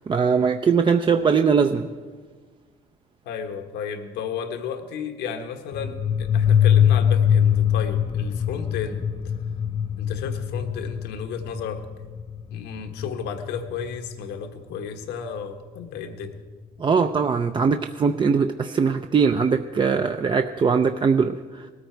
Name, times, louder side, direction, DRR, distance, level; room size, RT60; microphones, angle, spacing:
voice 1, 0.1-1.9 16.8-21.7, right 5 dB, 30° right, 7 dB, 0.5 m, -21 dB
voice 2, 3.2-9.3 10.0-11.8 12.5-16.4, left 6 dB, 85° left, 6 dB, 1.4 m, -33 dB
sound 1, 5.7-14.1, left 9 dB, 30° left, 0.5 m, -23 dB
19.5 x 13.5 x 4.6 m, 1.5 s
cardioid pair, 110°, 17 cm